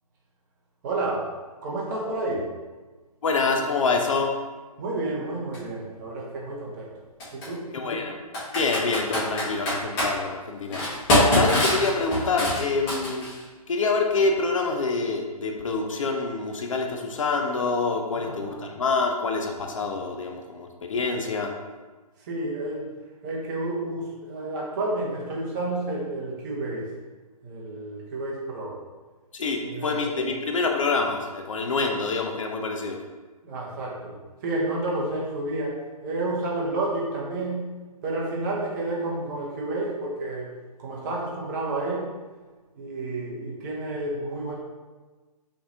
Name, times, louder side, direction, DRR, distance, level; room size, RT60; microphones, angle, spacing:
voice 1, 0.8-1.3 1.6-2.5 4.8-6.9 7.3-7.7 18.1-18.6 22.2-22.9 23.2-26.9 27.4-28.8 29.6-30.0 33.4-37.7 38.0-40.5 40.8-42.1 42.7-44.6, right 2 dB, 30° right, -3 dB, 1.0 m, -30 dB
voice 2, 3.2-4.3 7.7-8.2 8.5-13.3 13.7-21.5 29.3-33.0, left 4 dB, 55° left, 3 dB, 0.7 m, -26 dB
Computer keyboard, 5.5-5.6 7.2-7.5 8.3-10.1 10.7-13.4, left 1 dB, 20° left, 1.5 m, -23 dB
5.9 x 3.3 x 2.7 m, 1.3 s
figure-of-eight pair, 145°, 20 cm